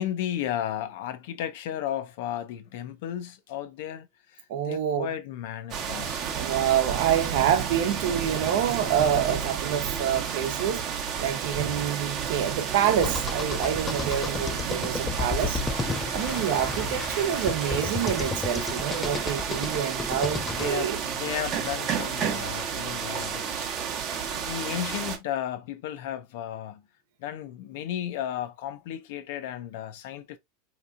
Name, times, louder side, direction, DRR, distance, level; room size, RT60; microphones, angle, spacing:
voice 1, 0.0-6.6 16.2-16.5 20.4-23.8 24.4-26.9 27.2-30.4, left 11 dB, 65° left, 0.5 m, -34 dB
voice 2, 4.5-5.1 6.3-15.6 16.1-21.0, right 9 dB, 65° right, 0.8 m, -27 dB
sound 1, 5.7-25.2, right 7 dB, 35° right, 0.8 m, -31 dB
sound 2, 13.0-20.7, left 4 dB, 10° left, 0.3 m, -33 dB
sound 3, 15.1-19.9, left 4 dB, 30° left, 0.8 m, -43 dB
3.5 x 2.9 x 2.5 m
supercardioid pair, 145°, 0 cm